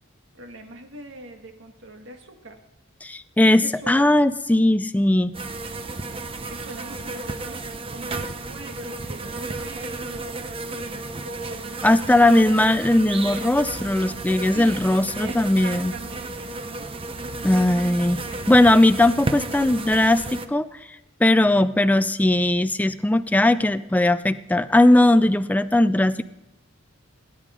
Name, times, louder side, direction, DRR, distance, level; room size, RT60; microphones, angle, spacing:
voice 1, 0.3-2.6 3.6-4.2 6.5-12.6 14.5-14.8 15.2-16.9 17.4-18.5, right 2 dB, 60° right, 4 dB, 1.9 m, -42 dB
voice 2, 3.0-5.3 11.8-15.9 17.4-18.2 18.5-20.9 21.2-26.2, left 1 dB, 10° left, 12 dB, 0.4 m, -19 dB
sound 1, 5.3-20.5, right 2 dB, 25° right, 0.7 m, -33 dB
18.5 x 10.0 x 3.7 m, 0.95 s
head